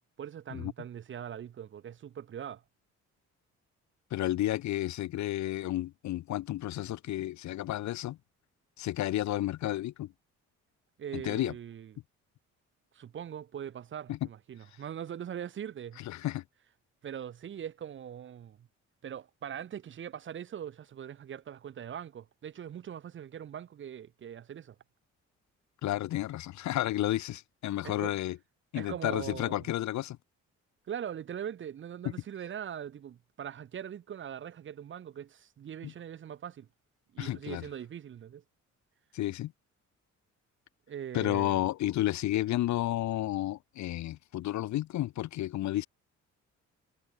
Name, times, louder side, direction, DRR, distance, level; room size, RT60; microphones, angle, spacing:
voice 1, 0.2-2.6 11.0-12.0 12.9-16.0 17.0-18.7 19.0-24.8 27.8-28.2 28.7-29.7 30.9-36.7 37.1-38.4 40.9-41.6, right 9 dB, 40° right, 0.6 m, -41 dB
voice 2, 4.1-8.2 8.8-10.1 11.1-11.5 14.1-14.2 16.1-16.4 25.8-28.4 28.7-30.2 35.8-35.9 37.2-37.6 39.1-39.5 41.1-45.9, left 14 dB, 65° left, 0.7 m, -31 dB
cardioid pair, 90°, 30 cm